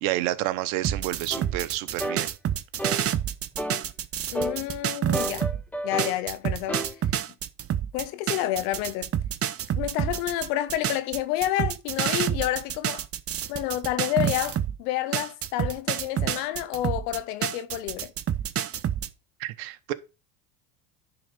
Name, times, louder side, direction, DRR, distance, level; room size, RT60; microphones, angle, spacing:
voice 1, 0.0-2.3 19.4-19.9, right 15 dB, 65° right, 1.1 m, -29 dB
sound 1, 0.8-5.6 6.0-14.8 15.1-19.1, right 10 dB, 30° right, 0.8 m, -28 dB
sound 2, 1.3-1.5 2.0-2.2 2.8-3.0 3.6-3.8 4.3-4.6 5.1-6.2 6.7-6.9, right 1 dB, 5° left, 0.8 m, -31 dB
voice 2, 4.3-5.5 5.8-6.9 7.9-9.1 9.8-13.0 13.5-18.1, left 14 dB, 65° left, 1.3 m, -29 dB
10.5 x 4.0 x 5.3 m
hypercardioid pair, 85°, 49 cm